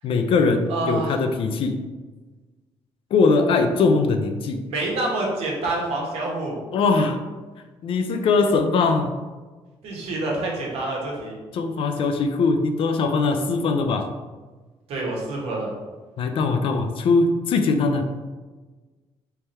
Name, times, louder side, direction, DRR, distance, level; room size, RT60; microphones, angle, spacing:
voice 1, 0.0-1.8 3.1-4.6 6.7-7.2 7.8-9.1 11.5-14.1 16.2-18.1, left 4 dB, 65° left, 7 dB, 0.5 m, -21 dB
voice 2, 0.7-1.2 4.7-6.6 9.8-11.4 14.9-15.7, right 2 dB, 85° right, -2 dB, 1.3 m, -27 dB
3.4 x 3.4 x 4.2 m, 1.3 s
cardioid pair, 120°, 10 cm